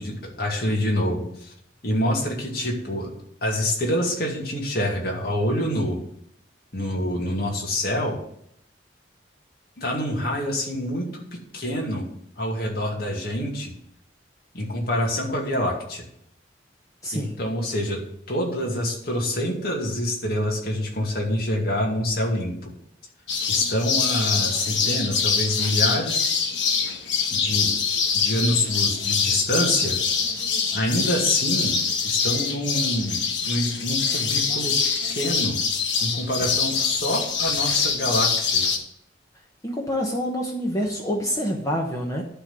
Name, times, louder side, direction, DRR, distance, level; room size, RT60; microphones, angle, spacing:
voice 1, 0.0-1.5 1.8-3.1 3.4-6.0 6.7-8.2 9.8-12.1 12.4-13.7 14.5-16.0 17.1-18.0 18.3-22.7 23.4-26.4 27.3-27.7 28.1-30.0 30.7-31.8 32.0-34.8 35.1-35.6 36.0-38.6, left 1 dB, 55° left, -1 dB, 2.2 m, -26 dB
voice 2, 17.0-17.3 39.6-42.2, equal, 15° left, -1 dB, 1.1 m, -27 dB
sound 1, 23.3-38.8, left 5 dB, 80° left, 1.3 m, -24 dB
11.5 x 3.8 x 7.6 m, 0.72 s
head